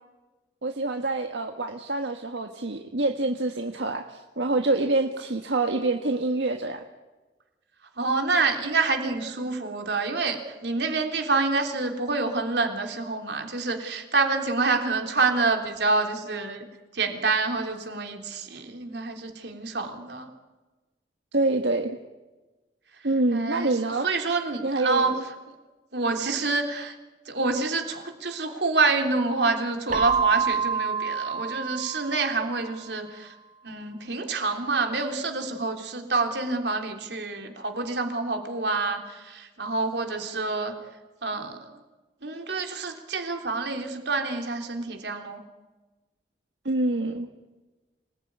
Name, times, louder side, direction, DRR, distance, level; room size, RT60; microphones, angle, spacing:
voice 1, 0.6-6.8 21.3-22.0 23.0-24.1 24.6-25.3 46.6-47.3, right 2 dB, 85° right, 4 dB, 1.6 m, -26 dB
voice 2, 8.0-16.6 16.9-20.3 23.3-23.7 24.0-25.2 25.9-26.9 27.3-33.3 33.6-40.7 41.2-41.6 42.2-45.4, right 3 dB, 70° right, 4 dB, 3.4 m, -27 dB
Keyboard (musical), 29.9-32.6, right 5 dB, 50° right, 1.4 m, -27 dB
26.5 x 20.0 x 9.6 m, 1.2 s
head